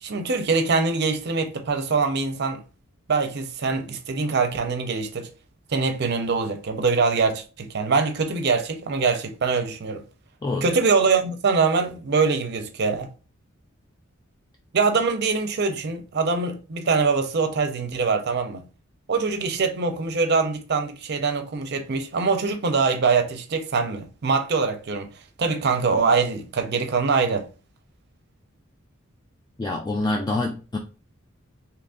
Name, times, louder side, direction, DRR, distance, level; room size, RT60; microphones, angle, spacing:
voice 1, 0.0-2.6 3.1-5.3 5.7-10.0 10.6-13.1 14.7-18.6 19.1-25.1 25.4-27.5, right 4 dB, 55° right, 0.5 m, -23 dB
voice 2, 29.6-30.8, left 2 dB, 20° left, 0.3 m, -26 dB
2.8 x 2.5 x 3.6 m
head